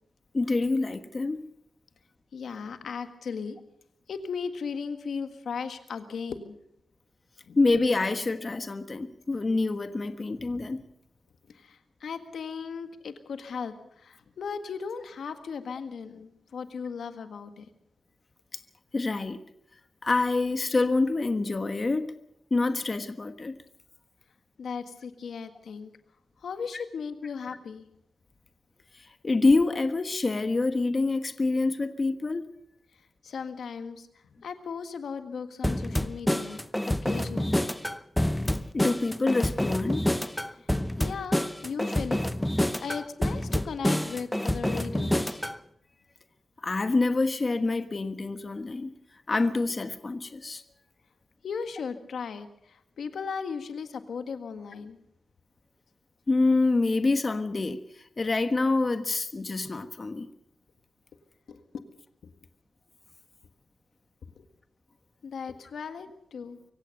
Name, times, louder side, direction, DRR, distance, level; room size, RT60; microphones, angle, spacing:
voice 1, 0.3-1.4 7.6-10.8 18.5-18.6 18.9-19.4 20.0-22.1 22.5-23.5 26.7-26.8 28.9-32.5 38.7-40.1 46.6-48.9 49.3-50.6 56.3-57.8 58.2-60.3, left 3 dB, 35° left, 10 dB, 1.3 m, -26 dB
voice 2, 2.3-3.6 4.1-6.6 7.5-7.6 11.5-17.7 24.6-25.9 26.4-27.9 33.2-37.7 40.6-40.7 41.0-42.2 42.8-45.4 51.4-55.0 61.5-61.8 62.2-62.3 64.3-64.5 65.2-66.6, left 6 dB, 85° left, 8 dB, 1.7 m, -37 dB
sound 1, 35.6-45.6, left 1 dB, 5° left, 0.8 m, -28 dB
24.5 x 16.0 x 6.7 m, 0.74 s
wide cardioid pair, 105°, 0 cm